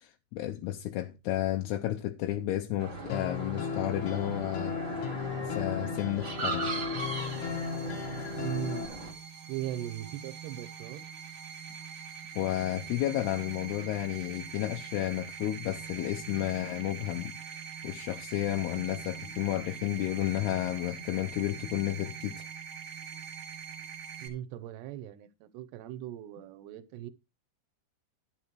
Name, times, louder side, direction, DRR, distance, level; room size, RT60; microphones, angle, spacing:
voice 1, 0.0-4.8 5.4-6.7 12.4-22.5, left 14 dB, 80° left, 2.7 m, -32 dB
sound 1, 2.8-9.1, right 2 dB, 25° right, 1.9 m, -38 dB
sound 2, 3.1-8.9, left 6 dB, 60° left, 2.4 m, -36 dB
sound 3, 7.0-24.3, right 7 dB, 45° right, 2.1 m, -43 dB
voice 2, 8.4-8.9 9.5-11.1 24.2-27.1, right 12 dB, 80° right, 2.9 m, -39 dB
12.5 x 10.0 x 3.1 m
omnidirectional pair, 5.0 m